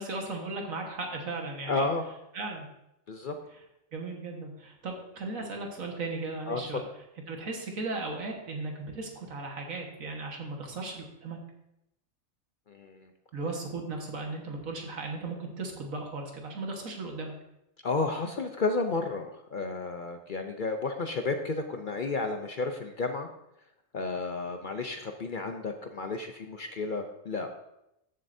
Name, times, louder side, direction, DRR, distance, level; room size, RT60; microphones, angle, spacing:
voice 1, 0.0-1.9 2.3-2.7 3.9-6.8 7.3-11.4 13.3-17.3, right 3 dB, 80° right, 1 dB, 1.9 m, -36 dB
voice 2, 1.7-2.1 3.1-3.3 6.5-6.8 12.7-13.1 17.8-23.3 23.9-27.5, left 3 dB, 50° left, 5 dB, 0.6 m, -32 dB
13.0 x 7.5 x 2.7 m, 0.84 s
omnidirectional pair, 1.4 m